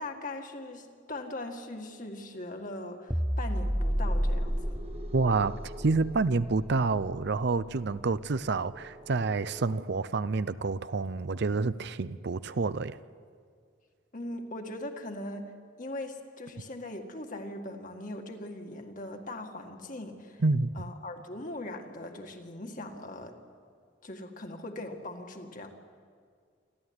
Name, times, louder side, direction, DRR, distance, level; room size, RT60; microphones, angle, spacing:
voice 1, 0.0-4.8 14.1-15.5 15.8-20.4 20.8-23.4 24.0-25.7, left 1 dB, 40° left, 4 dB, 1.9 m, -40 dB
sound 1, 3.1-7.6, equal, 5° right, 0.6 m, -31 dB
sound 2, 3.8-9.8, right 1 dB, 30° right, 1.2 m, -49 dB
voice 2, 5.1-13.0 20.4-20.7, right 3 dB, 55° right, 15 dB, 0.6 m, -28 dB
27.5 x 13.0 x 9.6 m, 2.1 s
head